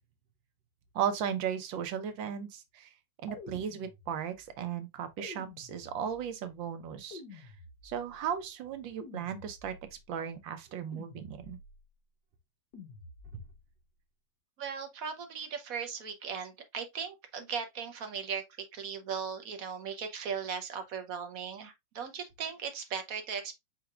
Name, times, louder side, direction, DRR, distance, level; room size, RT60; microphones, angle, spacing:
voice 1, 0.9-2.9 3.2-7.5 7.8-9.8 10.1-11.6, right 8 dB, 90° right, 1.5 m, -36 dB
sound 1, 3.3-4.5 5.2-6.4 7.1-8.2 9.0-10.0 10.9-11.9 12.7-13.6, left 4 dB, 65° left, 1.7 m, -50 dB
voice 2, 14.6-18.4 18.7-23.5, right 6 dB, 60° right, 1.0 m, -38 dB
4.9 x 4.6 x 2.3 m
omnidirectional pair, 2.0 m